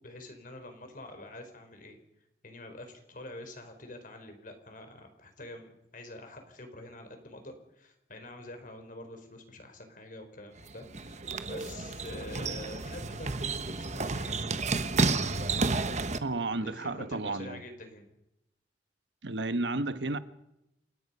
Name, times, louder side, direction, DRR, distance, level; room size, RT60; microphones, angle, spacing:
voice 1, 0.0-2.0 2.4-14.4 15.5-15.8 16.6-18.1, left 1 dB, 50° left, 4.5 m, -46 dB
sound 1, 10.6-16.2, right 3 dB, 40° right, 1.2 m, -31 dB
voice 2, 16.2-17.6 19.2-20.2, right 2 dB, 75° right, 1.2 m, -32 dB
29.0 x 18.0 x 5.5 m
head